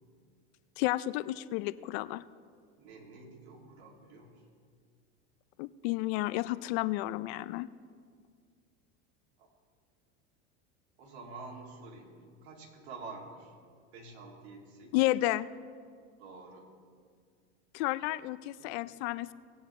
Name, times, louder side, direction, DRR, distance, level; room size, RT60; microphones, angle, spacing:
voice 1, 0.8-2.2 5.6-7.7 14.9-15.5 17.7-19.3, left 17 dB, 65° left, 16 dB, 0.5 m, -31 dB
voice 2, 2.8-4.4 9.4-9.5 11.0-13.5 13.9-14.9 16.2-16.7 18.6-18.7, right 3 dB, 70° right, -1 dB, 2.6 m, -48 dB
19.0 x 8.8 x 3.2 m, 2.1 s
supercardioid pair, 115°, 34 cm